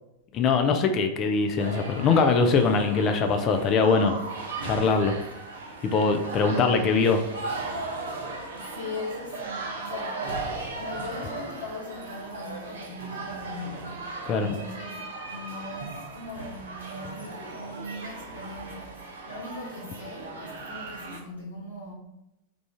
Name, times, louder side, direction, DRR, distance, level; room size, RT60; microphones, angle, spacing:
voice 1, 0.3-4.2 4.6-5.2 5.8-7.2 14.3-14.6, left 4 dB, 35° left, 6 dB, 0.3 m, -22 dB
sound 1, 1.6-21.2, right 3 dB, 65° right, 0.5 m, -37 dB
voice 2, 8.5-14.0 14.4-21.9, left 2 dB, 80° left, -7 dB, 1.5 m, -40 dB
3.3 x 2.4 x 3.5 m, 0.91 s
figure-of-eight pair, 90°, 0 cm